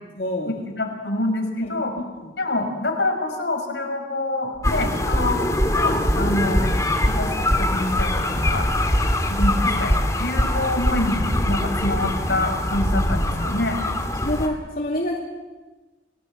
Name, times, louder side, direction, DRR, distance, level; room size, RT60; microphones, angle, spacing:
voice 1, 0.2-0.5 1.6-1.8 2.1-2.3 6.9-7.1 9.6-9.7 10.4-10.6 14.2-15.2, left 1 dB, 50° left, -1 dB, 2.5 m, -28 dB
voice 2, 0.7-1.9 2.4-5.5 5.7-6.7 7.1-7.3 7.6-8.9 9.3-13.8, left 2 dB, 75° left, 3 dB, 5.0 m, -26 dB
sound 1, 4.6-14.5, left 1 dB, 15° left, 2.1 m, -24 dB
Skipping heartbeat, 4.6-11.2, equal, 5° right, 2.3 m, -23 dB
29.5 x 18.5 x 7.5 m, 1.2 s
head